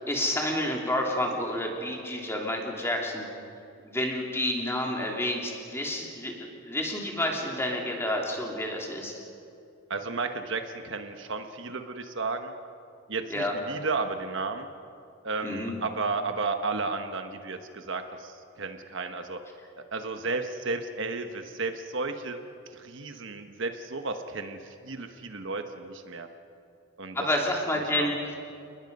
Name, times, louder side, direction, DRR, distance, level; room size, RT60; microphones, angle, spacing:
voice 1, 0.1-3.2 3.8-6.3 6.6-9.2 13.3-13.5 15.4-15.8 27.1-28.1, left 1 dB, 10° left, 0 dB, 3.0 m, -29 dB
voice 2, 9.9-12.5 13.1-14.7 15.2-19.4 19.9-22.4 22.7-26.3 27.0-27.2 27.9-28.1, right 3 dB, 60° right, 7 dB, 1.2 m, -33 dB
29.5 x 20.5 x 5.4 m, 2.6 s
head